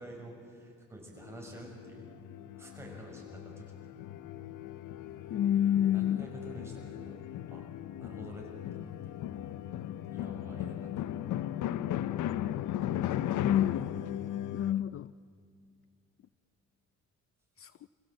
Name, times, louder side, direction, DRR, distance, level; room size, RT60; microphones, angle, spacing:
voice 1, 0.0-2.3 2.6-4.0 5.9-7.2 7.5-7.6 8.0-8.9 10.1-11.1 14.3-14.5, right 1 dB, 10° right, -1 dB, 6.9 m, -49 dB
sound 1, 1.2-14.7, left 11 dB, 80° left, 0.8 m, -37 dB
voice 2, 5.3-6.3 13.4-13.9 14.5-15.1 17.6-17.7, left 10 dB, 50° left, 16 dB, 0.5 m, -28 dB
27.0 x 16.5 x 8.0 m, 2.2 s
cardioid pair, 90°, 30 cm